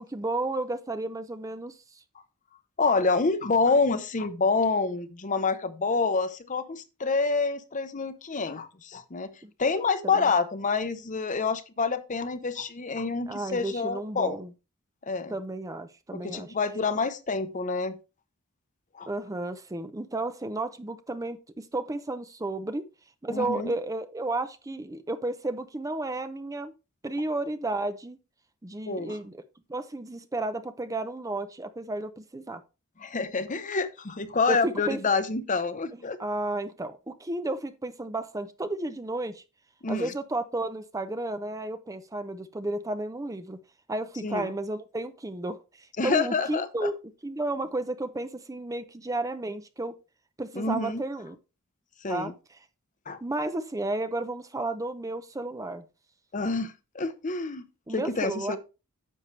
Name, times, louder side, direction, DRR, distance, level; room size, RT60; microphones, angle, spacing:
voice 1, 0.0-1.8 9.4-9.5 10.1-10.3 13.3-14.5 15.3-16.5 19.1-22.8 23.2-26.7 27.0-28.2 28.6-29.4 29.7-32.6 34.5-35.0 36.2-39.4 39.9-43.6 43.9-46.9 47.2-49.9 50.4-51.4 52.1-52.3 53.2-55.8 57.9-58.6, right 2 dB, 15° right, 0.5 m, -32 dB
voice 2, 2.8-9.3 9.6-14.4 15.0-15.3 16.1-18.0 18.9-19.1 23.3-23.7 28.9-29.2 33.0-36.2 39.8-40.1 44.2-44.5 46.0-46.9 50.5-51.0 52.0-52.3 53.1-53.2 56.3-58.6, left 4 dB, 35° left, 0.8 m, -27 dB
9.9 x 7.0 x 3.3 m
head